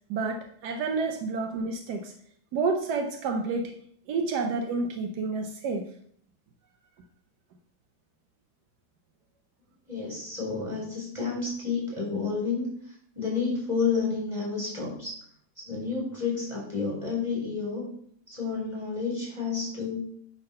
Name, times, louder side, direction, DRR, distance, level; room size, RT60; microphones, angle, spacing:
voice 1, 0.1-2.1 2.5-3.8 4.1-5.8, right 4 dB, 80° right, 5 dB, 1.3 m, -29 dB
voice 2, 9.9-15.2 15.6-17.9 18.3-20.0, left 5 dB, 15° right, -4 dB, 3.7 m, -30 dB
10.0 x 3.8 x 5.5 m, 0.63 s
omnidirectional pair, 1.7 m